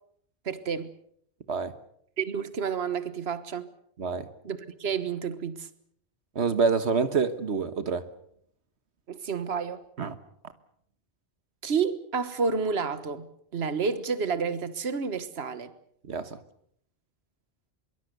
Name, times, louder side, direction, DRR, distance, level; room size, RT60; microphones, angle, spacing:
voice 1, 0.4-0.9 2.2-3.7 4.4-5.7 9.1-9.8 11.6-15.7, right 5 dB, 70° right, 1.6 m, -30 dB
voice 2, 6.3-8.0 10.0-10.1 16.1-16.4, right 5 dB, 85° right, 1.6 m, -26 dB
24.0 x 23.5 x 6.8 m
omnidirectional pair, 1.1 m